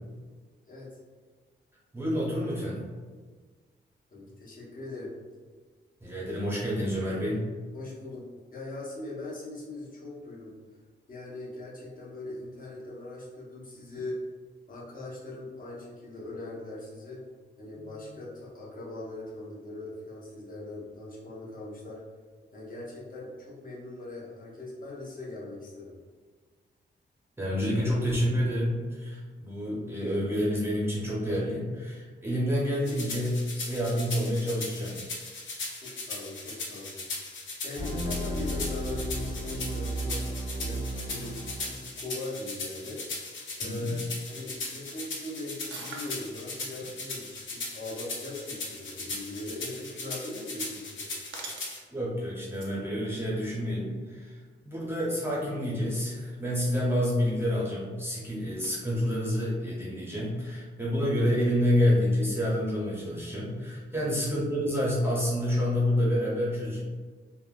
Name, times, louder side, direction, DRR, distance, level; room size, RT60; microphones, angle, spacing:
voice 1, 1.9-2.8 6.0-7.5 17.8-18.1 27.4-35.0 43.6-44.0 51.9-66.8, equal, 10° right, -6 dB, 0.6 m, -28 dB
voice 2, 4.1-5.1 7.7-10.6 11.1-14.2 14.7-17.2 17.6-22.0 22.5-26.0 35.8-37.0 37.6-40.3 40.6-43.3 43.6-44.0 44.3-51.5 63.9-64.2, left 2 dB, 45° left, -6 dB, 0.8 m, -40 dB
sound 1, 32.8-51.8, left 3 dB, 75° left, 0.7 m, -38 dB
sound 2, 37.8-41.7, right 1 dB, 25° left, 1.1 m, -33 dB
sound 3, 45.7-46.3 48.1-48.2 49.5-49.9 50.2-50.5 51.1-51.8 52.5-52.8, right 4 dB, 75° right, 0.5 m, -43 dB
3.3 x 2.1 x 2.3 m, 1.5 s
wide cardioid pair, 135°, 20 cm